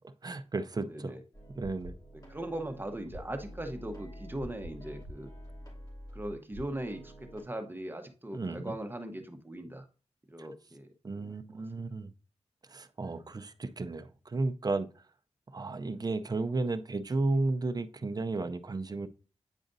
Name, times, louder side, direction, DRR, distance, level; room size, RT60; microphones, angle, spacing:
voice 1, 0.2-1.1 1.6-1.9 8.3-8.7 11.0-12.1 12.7-14.9 15.5-19.1, right 3 dB, 35° right, 0.5 m, -33 dB
voice 2, 0.9-1.2 2.3-5.3 6.1-9.9 10.3-10.9 11.1-11.6, right 1 dB, 20° right, 1.0 m, -39 dB
sound 1, 1.3-7.4, equal, 35° left, 2.7 m, -47 dB
9.0 x 4.9 x 2.6 m
wide cardioid pair, 100°, 11 cm